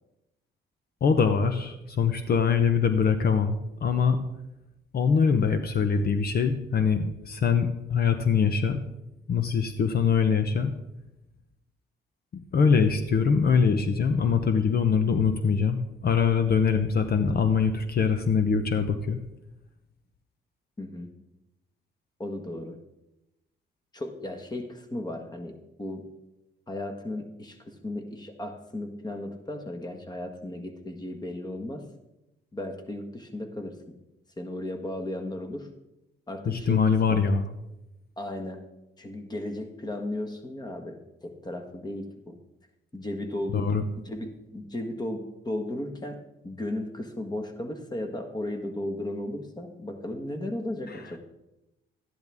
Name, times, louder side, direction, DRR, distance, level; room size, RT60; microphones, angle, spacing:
voice 1, 1.0-4.2 4.9-8.8 9.3-10.7 12.5-19.2 36.5-37.5 43.5-43.8 50.9-51.0, left 6 dB, 50° left, 9 dB, 0.8 m, -23 dB
voice 2, 20.8-21.1 22.2-22.8 23.9-26.1 26.7-31.9 32.5-34.0 34.4-35.7 36.3-37.2 38.2-38.6 39.0-42.4 42.9-46.2 46.4-51.2, left 1 dB, 20° left, 5 dB, 1.6 m, -35 dB
12.5 x 10.5 x 3.6 m, 0.91 s
cardioid pair, 90°, 20 cm